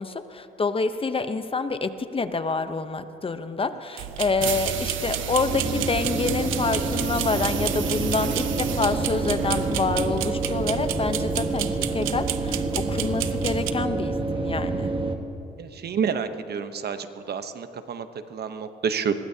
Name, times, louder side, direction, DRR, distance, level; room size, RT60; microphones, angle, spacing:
voice 1, 0.0-14.9, left 4 dB, 30° left, 10 dB, 0.8 m, -27 dB
sound 1, 4.0-13.7, right 12 dB, 90° right, 0.6 m, -32 dB
sound 2, 4.4-10.0, right 7 dB, 75° right, 1.4 m, -33 dB
sound 3, 5.5-15.2, right 3 dB, 25° right, 1.5 m, -28 dB
voice 2, 15.6-19.1, right 6 dB, 55° right, 9 dB, 0.9 m, -29 dB
24.0 x 21.5 x 2.8 m, 3.0 s
cardioid pair, 90°, 20 cm